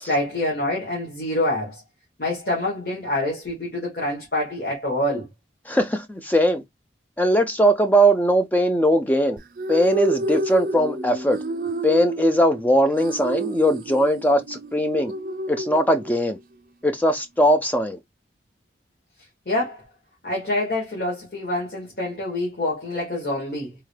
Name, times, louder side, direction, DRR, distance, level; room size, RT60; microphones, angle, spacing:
voice 1, 0.1-1.8 2.2-5.3 19.5-19.8 20.2-23.7, left 1 dB, 55° left, 1.3 m, -26 dB
voice 2, 5.7-6.6 7.2-9.4 9.7-11.4 11.8-15.1 15.5-16.4 16.8-18.0, equal, 10° left, 0.3 m, -20 dB
sound 1, 9.4-16.4, right 2 dB, 50° right, 0.5 m, -30 dB
3.7 x 2.1 x 3.1 m
head